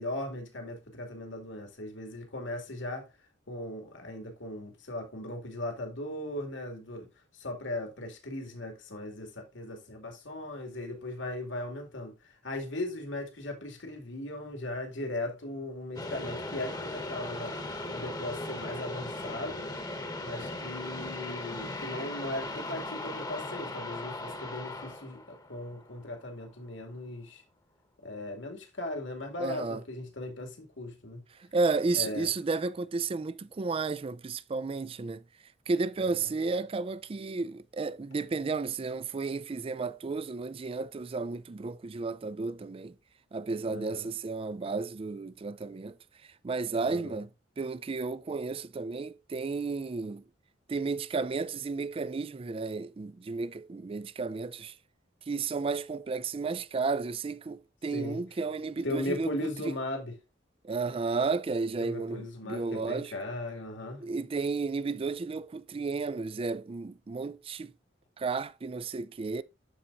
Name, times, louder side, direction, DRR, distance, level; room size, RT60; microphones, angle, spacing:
voice 1, 0.0-3.1 3.5-7.1 7.3-17.6 17.9-19.7 20.2-27.4 28.0-31.2 31.9-32.3 36.0-36.3 43.7-44.1 46.8-47.2 57.9-58.2 58.8-60.2 61.8-64.1, left 1 dB, 70° left, 2.3 m, -38 dB
sound 1, 16.0-26.2, left 2 dB, 20° left, 1.1 m, -38 dB
voice 2, 29.4-29.8 31.4-35.2 35.7-43.0 43.3-46.0 46.4-47.3 47.6-50.2 50.7-54.7 55.3-59.7 60.6-63.1 64.0-67.7 68.2-69.4, right 4 dB, 30° right, 0.4 m, -33 dB
12.5 x 4.4 x 2.5 m
head